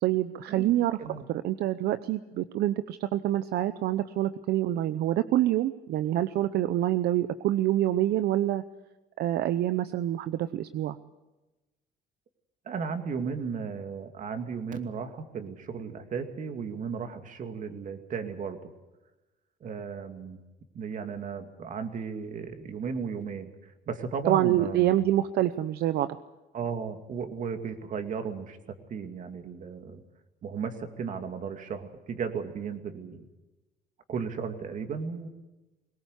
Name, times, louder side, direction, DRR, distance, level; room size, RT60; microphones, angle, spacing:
voice 1, 0.0-1.0 1.3-8.6 9.2-11.0 24.3-26.2, right 13 dB, 75° right, 12 dB, 0.8 m, -26 dB
voice 2, 12.7-18.7 19.6-20.4 20.7-25.0 26.5-28.6 28.9-30.0 30.4-33.3 34.1-35.3, right 6 dB, 50° right, 6 dB, 2.5 m, -35 dB
22.0 x 19.0 x 8.3 m, 1.1 s
cardioid pair, 110°, 17 cm